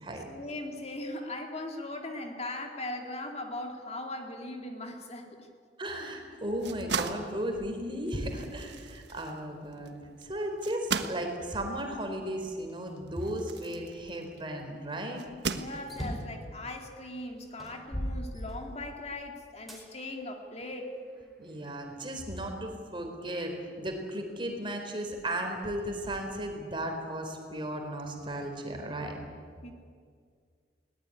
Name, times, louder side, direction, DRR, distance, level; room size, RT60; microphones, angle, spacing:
voice 1, 0.3-5.5 15.6-21.0 29.6-29.7, left 2 dB, 35° left, 3 dB, 2.2 m, -39 dB
voice 2, 5.8-10.0 10.2-15.3 21.4-29.2, right 1 dB, 30° right, 3 dB, 3.9 m, -35 dB
sound 1, 6.4-14.5 15.2-16.2, right 5 dB, 65° right, 1.3 m, -38 dB
sound 2, 15.8-16.4 17.1-17.2 17.6-19.0 19.7-19.8 20.6-21.6, equal, ahead, 4.6 m, -37 dB
21.0 x 19.0 x 9.8 m, 2.1 s
head